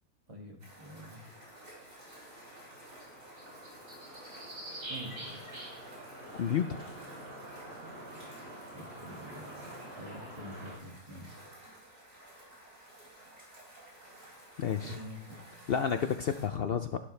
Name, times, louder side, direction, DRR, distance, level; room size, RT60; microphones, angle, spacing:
voice 1, 0.3-1.3 4.9-5.5 8.7-11.4 12.3-12.4 14.8-15.4, equal, 20° right, 0 dB, 2.0 m, -47 dB
sound 1, 0.6-16.4, right 1 dB, 85° right, 4.9 m, -54 dB
sound 2, 0.9-10.8, right 1 dB, 65° right, 4.0 m, -46 dB
voice 2, 6.3-6.9 14.6-15.0 15.7-17.0, left 7 dB, 75° left, 9 dB, 0.5 m, -31 dB
13.0 x 11.5 x 3.3 m, 0.71 s
omnidirectional pair, 1.6 m